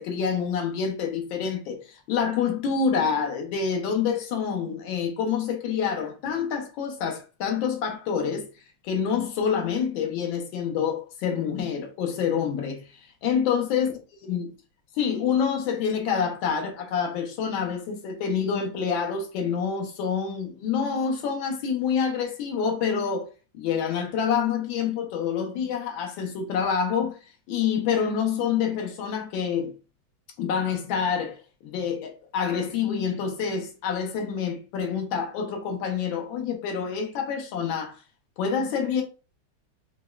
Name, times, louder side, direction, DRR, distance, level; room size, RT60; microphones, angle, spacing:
voice 1, 0.0-8.5 8.8-12.9 13.2-13.9 14.2-14.5 15.0-23.3 23.5-27.2 27.5-29.7 30.4-38.0 38.4-39.0, left 7 dB, 75° left, 1.5 m, -27 dB
5.1 x 2.1 x 2.3 m
omnidirectional pair, 2.2 m